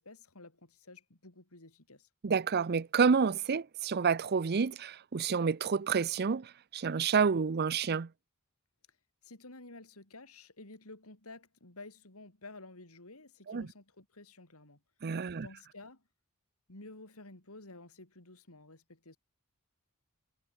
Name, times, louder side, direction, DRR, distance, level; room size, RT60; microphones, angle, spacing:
voice 1, 0.0-2.1 9.2-14.8 15.3-16.0 16.7-19.2, left 2 dB, 80° left, 4.3 m, -52 dB
voice 2, 2.2-8.1 13.5-13.7 15.0-15.5, right 5 dB, 45° right, 0.5 m, -29 dB
head